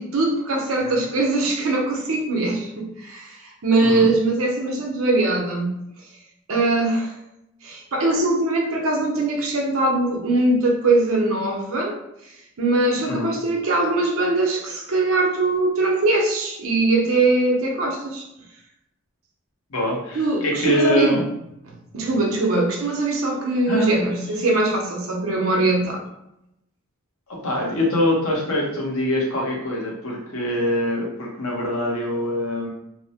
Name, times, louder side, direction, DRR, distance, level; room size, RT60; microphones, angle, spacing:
voice 1, 0.0-5.8 6.5-7.1 7.6-12.0 12.6-18.2 20.1-21.2 21.9-26.0, right 2 dB, 70° right, 0 dB, 0.7 m, -21 dB
voice 2, 3.8-4.1 13.1-13.3 19.7-21.2 23.7-24.1 27.3-32.7, left 1 dB, 75° left, -2 dB, 0.8 m, -24 dB
2.7 x 2.0 x 2.8 m, 0.82 s
head